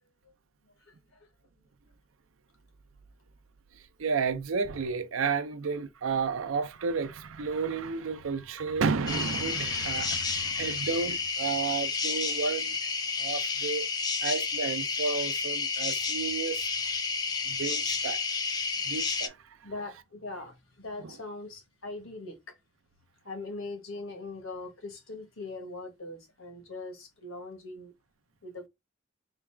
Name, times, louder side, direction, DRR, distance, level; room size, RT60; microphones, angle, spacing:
voice 1, 4.0-12.9 13.2-13.9 14.2-16.7 17.5-18.2 18.8-19.4 19.6-19.7 21.0-21.1, right 5 dB, 85° right, 0.5 m, -32 dB
sound 1, 9.1-19.3, left 5 dB, 20° left, 0.3 m, -31 dB
voice 2, 19.6-22.6 23.2-27.9 28.4-28.7, left 2 dB, 85° left, 1.2 m, -41 dB
3.9 x 2.4 x 3.3 m
head